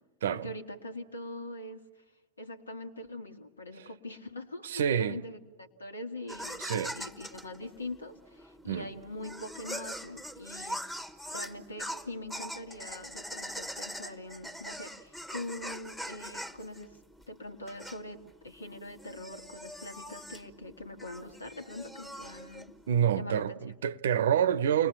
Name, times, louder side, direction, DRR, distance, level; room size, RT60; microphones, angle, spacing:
voice 1, 0.3-1.8 2.4-17.0 17.3-22.7 23.1-23.6, left 1 dB, 75° left, 1.9 m, -43 dB
voice 2, 4.6-5.2 6.6-6.9 8.7-8.9 22.9-24.9, right 8 dB, 60° right, 0.8 m, -27 dB
sound 1, 6.3-23.1, equal, 5° left, 1.3 m, -42 dB
29.5 x 21.5 x 7.3 m
figure-of-eight pair, 90°, 0 cm